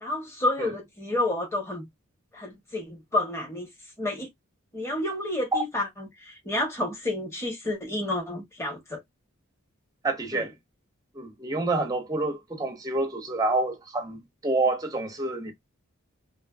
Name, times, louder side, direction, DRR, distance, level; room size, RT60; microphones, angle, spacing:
voice 1, 0.0-1.9 2.3-3.7 4.0-4.3 4.7-9.0 10.3-10.5, left 1 dB, 15° left, 0.8 m, -30 dB
voice 2, 10.0-10.5 11.2-15.5, right 2 dB, 15° right, 0.5 m, -28 dB
2.5 x 2.4 x 2.3 m
head